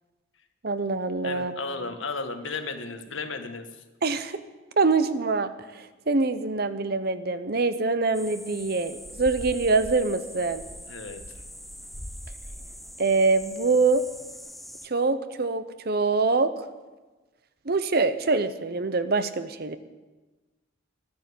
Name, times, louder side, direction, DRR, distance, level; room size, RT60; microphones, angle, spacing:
voice 1, 0.6-1.5 4.0-4.4 4.8-5.5 6.1-10.6 13.0-14.0 14.8-16.5 17.7-19.8, right 3 dB, 50° right, 12 dB, 0.8 m, -24 dB
voice 2, 1.2-3.8 10.9-11.2, left 4 dB, 75° left, 7 dB, 1.4 m, -34 dB
sound 1, 8.1-14.9, equal, ahead, 0.5 m, -42 dB
12.5 x 10.5 x 8.5 m, 1.2 s
head